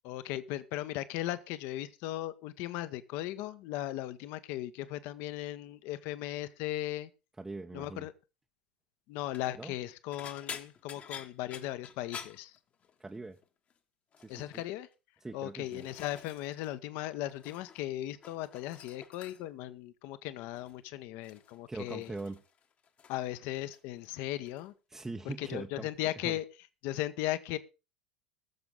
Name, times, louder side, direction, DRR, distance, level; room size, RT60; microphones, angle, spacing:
voice 1, 0.0-7.1 7.7-8.1 9.1-12.6 14.3-14.9 15.3-22.1 23.1-24.7 25.2-26.4 26.8-27.6, left 14 dB, 50° left, 1.0 m, -37 dB
voice 2, 7.4-8.1 9.6-9.7 13.0-13.4 14.2-14.5 15.2-15.8 21.7-22.4 24.9-25.9 26.2-26.4, right 2 dB, 10° right, 0.8 m, -41 dB
sound 1, 9.2-9.5 10.1-13.2 13.4-13.8 14.1-14.6 15.3-16.7 17.0-17.9 18.1-19.6 20.5-20.8 21.2-23.3 23.5-24.1 24.4-24.7 25.9-26.0, left 7 dB, 30° left, 1.2 m, -49 dB
20.0 x 7.1 x 3.8 m
figure-of-eight pair, 80°, 5 cm